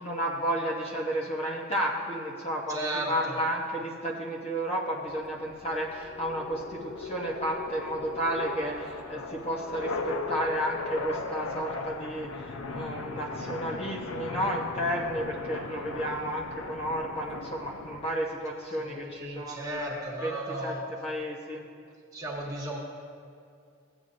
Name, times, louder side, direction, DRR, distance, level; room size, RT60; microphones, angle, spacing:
voice 1, 0.0-19.8 20.2-20.7 21.0-21.6, equal, 30° left, -2 dB, 0.7 m, -32 dB
voice 2, 2.7-3.3 18.8-20.8 22.1-22.8, right 1 dB, 15° right, -3 dB, 1.3 m, -35 dB
sound 1, 5.1-18.1, left 3 dB, 80° left, 0.6 m, -38 dB
15.5 x 7.9 x 2.5 m, 2.3 s
head